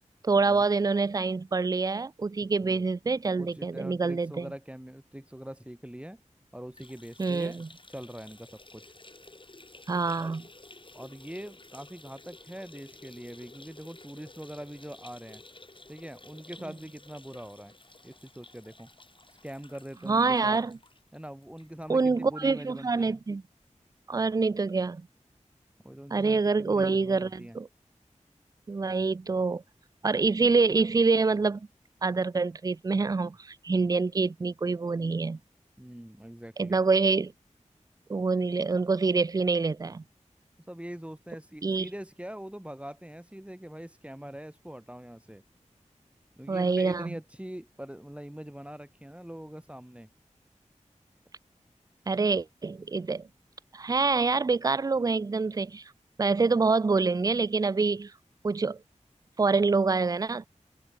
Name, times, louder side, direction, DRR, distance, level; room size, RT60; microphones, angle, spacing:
voice 1, 0.2-4.5 7.2-7.7 9.9-10.4 20.1-20.8 21.9-23.4 24.1-25.1 26.1-27.7 28.7-29.6 30.0-31.7 32.0-35.4 36.6-37.3 38.1-40.0 41.6-41.9 46.5-47.1 52.1-53.3 53.7-55.8 56.2-58.1 58.4-58.8 59.4-60.5, right 4 dB, 30° right, 0.3 m, -26 dB
voice 2, 3.4-6.2 6.5-8.9 10.2-10.4 10.9-15.4 15.9-17.7 18.0-18.9 19.4-20.6 21.1-23.2 25.8-27.6 35.8-36.8 40.7-45.4 46.4-50.1, equal, 10° right, 2.1 m, -43 dB
sound 1, 6.7-22.1 22.4-22.5 22.8-22.9 23.9-24.0, left 2 dB, 40° left, 5.3 m, -53 dB
wide cardioid pair, 70°, 13 cm